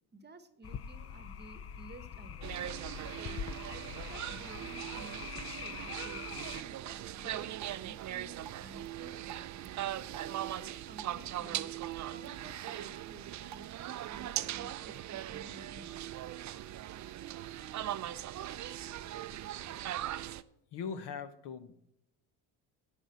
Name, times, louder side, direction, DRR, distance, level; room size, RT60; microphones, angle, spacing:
voice 1, 0.1-2.6 3.2-3.4 3.6-6.2 6.5-9.9 10.2-11.7 12.1-16.1, right 2 dB, 20° right, 11 dB, 1.1 m, -53 dB
sound 1, 0.6-6.6, left 7 dB, 30° left, 0.5 m, -44 dB
sound 2, 2.4-20.4, right 13 dB, 40° right, 0.5 m, -40 dB
Drip, 7.5-14.5, right 10 dB, 60° right, 0.9 m, -55 dB
voice 2, 20.7-21.9, left 6 dB, 65° left, 11 dB, 1.2 m, -41 dB
10.0 x 5.4 x 8.3 m, 0.75 s
supercardioid pair, 90°, 45 cm